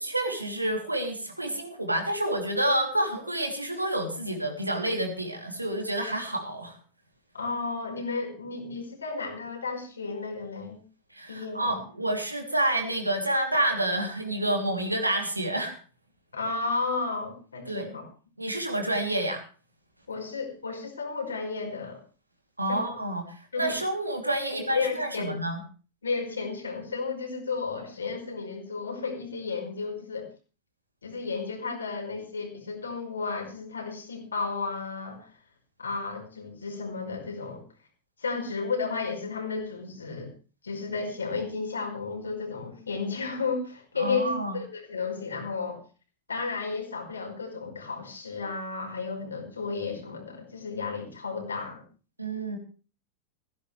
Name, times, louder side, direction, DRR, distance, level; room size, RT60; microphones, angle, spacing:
voice 1, 0.0-6.8 11.1-15.8 17.7-17.9 18.4-19.4 22.6-25.6 44.0-44.6 52.2-52.6, right 1 dB, 85° right, 3 dB, 3.3 m, -29 dB
voice 2, 7.3-10.8 11.3-11.8 16.3-18.1 20.1-22.0 22.7-22.9 23.5-23.8 24.5-25.4 26.0-30.3 31.0-35.3 35.8-37.6 38.2-40.3 40.6-45.8 46.3-51.9, left 4 dB, 75° left, 2 dB, 5.0 m, -33 dB
16.5 x 16.0 x 3.4 m, 0.37 s
figure-of-eight pair, 90°, 0 cm